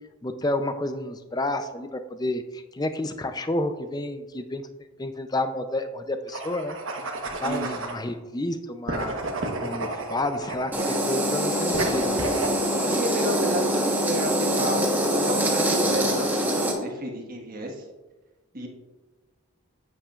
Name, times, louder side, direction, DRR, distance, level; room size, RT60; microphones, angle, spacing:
voice 1, 0.2-4.7 5.0-6.8 7.4-9.2 9.6-12.2, left 1 dB, 20° left, 9 dB, 0.4 m, -30 dB
sound 1, 6.3-8.0 8.9-11.0 11.7-12.6, right 2 dB, 60° right, 1.1 m, -31 dB
sound 2, 10.7-16.7, right 1 dB, 10° right, 1.1 m, -24 dB
voice 2, 12.8-17.8 18.5-18.7, equal, 40° right, 1 dB, 1.4 m, -32 dB
10.5 x 8.7 x 2.4 m, 1.2 s
head